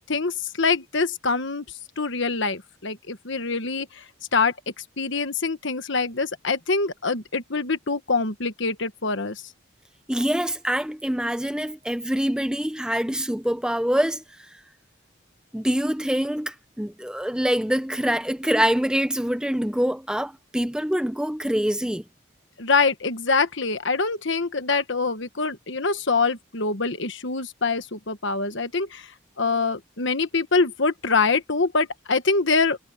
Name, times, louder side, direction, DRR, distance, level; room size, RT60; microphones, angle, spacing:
voice 1, 0.1-1.6 2.0-4.0 4.3-4.5 5.0-9.4 22.6-29.1 29.4-32.8, left 4 dB, 55° left, 1.4 m, -24 dB
voice 2, 10.1-14.5 15.5-22.0, equal, 5° right, 0.7 m, -25 dB
head